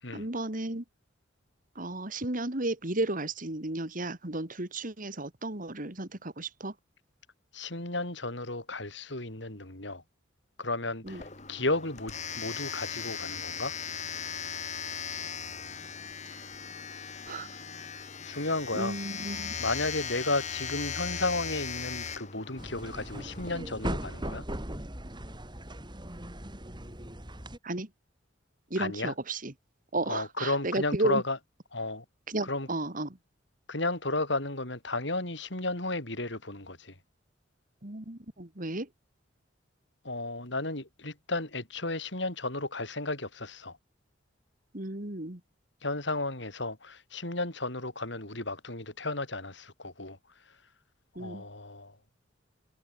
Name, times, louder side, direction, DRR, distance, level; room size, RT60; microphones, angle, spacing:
voice 1, 0.1-0.8 1.8-6.7 11.0-11.2 16.4-16.5 17.3-17.5 18.7-19.5 27.6-27.9 28.7-29.5 29.9-31.2 32.3-33.2 37.8-38.9 44.7-45.4 51.2-51.4, right 2 dB, 45° right, 2.6 m, -33 dB
voice 2, 7.5-10.0 10.6-13.7 18.2-18.9 19.6-24.4 28.8-29.1 30.1-31.4 31.7-32.0 32.5-32.7 33.7-36.9 40.0-43.8 45.8-50.2 51.2-51.9, left 2 dB, 65° left, 6.5 m, -33 dB
Domestic sounds home sounds, 11.1-23.5, left 7 dB, 40° left, 6.2 m, -38 dB
sound 1, 22.6-27.6, right 1 dB, 25° right, 5.4 m, -38 dB
head